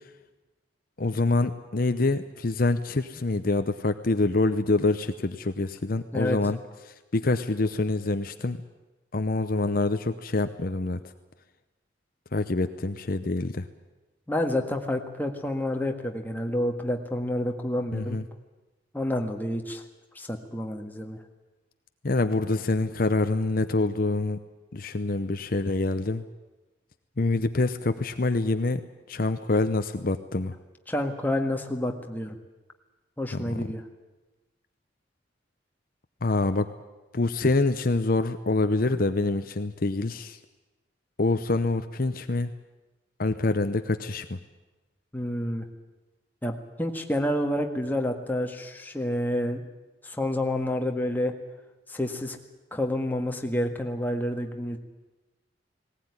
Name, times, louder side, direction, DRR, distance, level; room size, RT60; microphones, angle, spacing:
voice 1, 1.0-6.6 6.9-8.6 9.1-11.0 12.3-13.7 17.9-18.2 22.0-24.4 24.7-26.2 27.2-30.6 33.3-33.7 36.2-36.7 37.1-40.4 41.2-42.5 43.2-44.4, left 2 dB, 50° left, 9 dB, 0.8 m, -26 dB
voice 2, 14.3-18.2 18.9-19.8 20.2-21.2 30.9-32.4 33.2-33.8 45.1-45.7 46.4-49.6 50.0-51.3 51.9-52.4 52.7-54.8, left 1 dB, 10° left, 3 dB, 1.8 m, -29 dB
19.0 x 18.0 x 9.7 m, 1.1 s
head